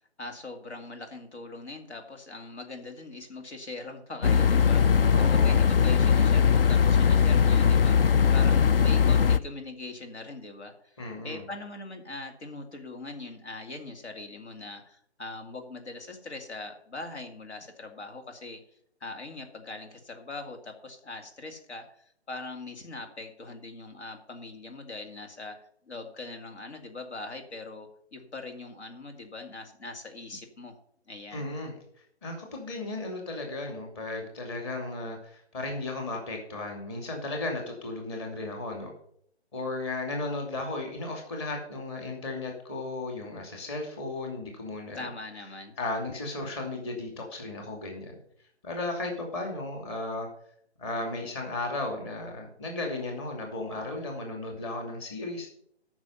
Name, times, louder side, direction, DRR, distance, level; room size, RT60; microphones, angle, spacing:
voice 1, 0.2-8.0 8.3-18.6 19.0-30.8 31.1-31.5 44.9-45.7, left 2 dB, 75° left, 5 dB, 2.4 m, -41 dB
sound 1, 4.2-9.4, left 7 dB, 55° left, 0.6 m, -20 dB
voice 2, 5.1-5.6 11.0-11.4 31.3-31.7 32.2-38.9 39.5-45.0 45.8-48.2 48.6-50.3 50.8-55.5, left 2 dB, 25° left, 2 dB, 2.5 m, -35 dB
13.5 x 6.2 x 5.6 m, 0.65 s
figure-of-eight pair, 155°, 34 cm